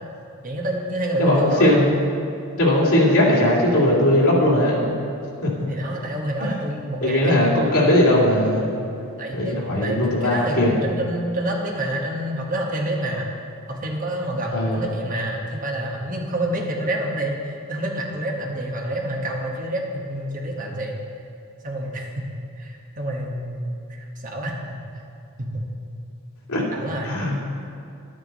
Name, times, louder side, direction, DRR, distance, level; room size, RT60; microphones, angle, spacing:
voice 1, 0.4-1.8 5.7-7.7 9.2-13.3 13.7-21.0 21.6-22.1 22.6-24.8 25.4-25.7 26.7-27.1, right 1 dB, 40° right, 0 dB, 1.3 m, -28 dB
voice 2, 1.2-1.9 2.6-5.0 5.4-5.5 6.4-6.5 7.0-8.7 9.3-10.7 14.5-14.8 26.5-26.6 27.0-27.4, left 1 dB, 85° left, -4 dB, 2.4 m, -19 dB
11.5 x 9.1 x 4.1 m, 2.5 s
head